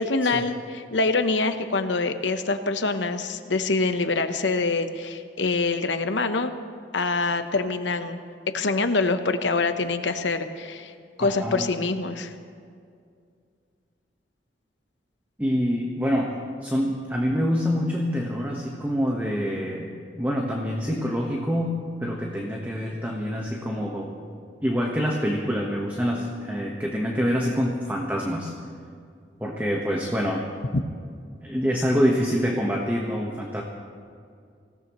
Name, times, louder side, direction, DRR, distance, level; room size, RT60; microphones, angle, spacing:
voice 1, 0.0-6.5 6.9-8.2 8.5-10.9 11.2-12.3, left 3 dB, 80° left, 8 dB, 1.0 m, -25 dB
voice 2, 11.2-11.7 15.4-16.4 16.6-24.2 24.6-28.5 29.4-30.4 31.4-33.6, equal, 10° right, -1 dB, 1.2 m, -26 dB
25.5 x 17.0 x 3.1 m, 2.2 s
head